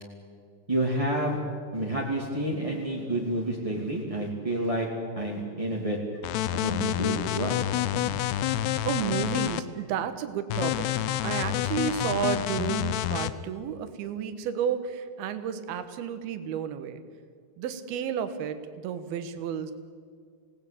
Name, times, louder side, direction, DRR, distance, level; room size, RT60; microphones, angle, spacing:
voice 1, 0.7-1.4 1.7-4.9 5.1-6.0 6.5-7.6 7.9-8.4, right 1 dB, 10° right, -3 dB, 1.6 m, -29 dB
sound 1, 6.2-9.6 10.5-13.3, left 13 dB, 75° left, 2.7 m, -28 dB
voice 2, 8.9-10.9 11.2-17.0 17.6-18.6 18.8-19.7, right 8 dB, 65° right, 10 dB, 3.0 m, -31 dB
27.5 x 18.5 x 8.6 m, 2.2 s
omnidirectional pair, 5.2 m